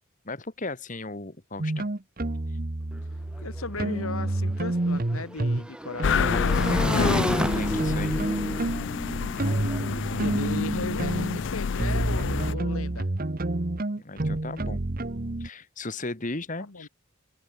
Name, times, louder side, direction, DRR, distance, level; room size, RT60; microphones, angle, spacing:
voice 1, 0.3-1.9 6.7-8.2 14.0-14.8 15.4-16.9, left 2 dB, 35° left, 1.6 m, -36 dB
sound 1, 1.6-5.7 6.0-15.5, right 2 dB, 40° right, 1.0 m, -29 dB
Motorcycle / Engine, 2.9-3.0 3.3-10.4, right 1 dB, 5° right, 0.6 m, -33 dB
voice 2, 3.4-6.7 10.2-13.1 16.6-16.9, left 3 dB, 75° left, 1.6 m, -37 dB
sound 2, 6.0-12.5, left 5 dB, 55° left, 0.4 m, -28 dB
head